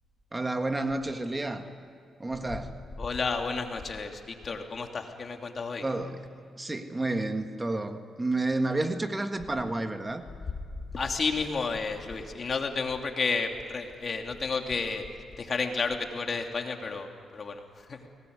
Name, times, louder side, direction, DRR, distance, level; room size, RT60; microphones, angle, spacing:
voice 1, 0.3-1.7 2.2-2.8 5.8-10.2, right 2 dB, 20° right, 7 dB, 1.6 m, -30 dB
voice 2, 3.0-5.8 10.9-15.1 15.4-18.1, left 4 dB, 45° left, 3 dB, 2.8 m, -31 dB
23.5 x 19.0 x 9.6 m, 2.3 s
cardioid pair, 70°, 0 cm